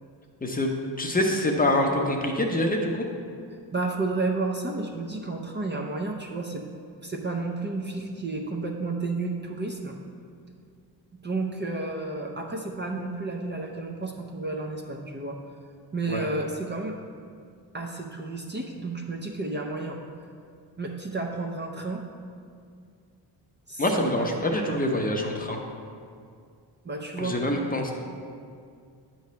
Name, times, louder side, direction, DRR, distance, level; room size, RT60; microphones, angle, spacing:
voice 1, 0.4-3.0 16.1-16.3 23.8-25.6 27.2-27.9, left 1 dB, 20° left, 1 dB, 0.7 m, -25 dB
voice 2, 3.7-6.6 7.0-10.0 11.2-15.4 15.9-16.9 17.7-20.0 20.8-22.0 23.7-24.7 26.8-27.4, right 3 dB, 25° right, 1 dB, 0.6 m, -31 dB
9.2 x 3.1 x 6.7 m, 2.3 s
cardioid pair, 115°, 42 cm